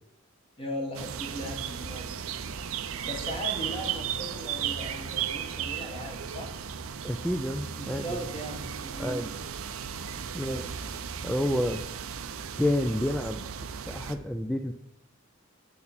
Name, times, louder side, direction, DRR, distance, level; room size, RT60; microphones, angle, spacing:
voice 1, 0.6-2.1 3.1-6.6 7.8-9.3 10.4-10.7, equal, 25° left, 2 dB, 1.3 m, -38 dB
sound 1, 0.9-14.2, right 8 dB, 75° right, 0.6 m, -35 dB
voice 2, 7.0-8.3 9.0-9.3 10.3-10.6 11.2-11.8 12.6-13.4 13.9-14.7, left 1 dB, ahead, 4 dB, 0.3 m, -29 dB
8.5 x 6.9 x 4.3 m, 0.80 s
head